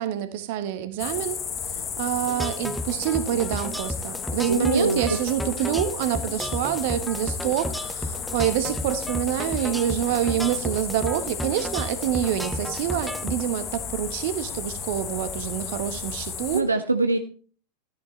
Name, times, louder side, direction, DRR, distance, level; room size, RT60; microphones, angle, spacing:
voice 1, 0.0-16.6, right 11 dB, 50° right, 11 dB, 1.2 m, -27 dB
sound 1, 1.0-16.6, left 7 dB, 25° left, 1.2 m, -34 dB
sound 2, 2.3-13.4, equal, 5° right, 0.8 m, -33 dB
voice 2, 4.5-5.0 16.5-17.2, right 3 dB, 80° right, 8 dB, 0.7 m, -22 dB
13.5 x 10.5 x 3.3 m, 0.42 s
figure-of-eight pair, 90°, 0 cm